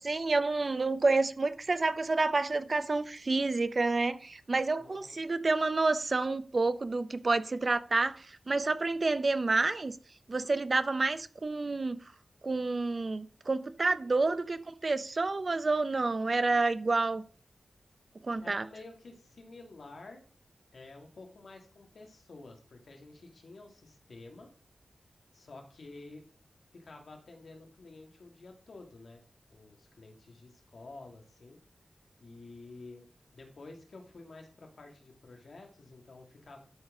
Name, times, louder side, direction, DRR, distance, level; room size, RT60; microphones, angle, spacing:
voice 1, 0.0-10.0 10.3-12.0 12.4-17.2 18.2-18.6, right 3 dB, 45° right, 0.6 m, -29 dB
voice 2, 4.8-5.2 18.4-20.2 20.7-24.5 25.3-26.2 26.7-29.2 29.5-31.6 32.2-33.1 33.3-36.6, left 3 dB, 70° left, 2.0 m, -50 dB
12.0 x 4.1 x 4.9 m
wide cardioid pair, 105°, 0 cm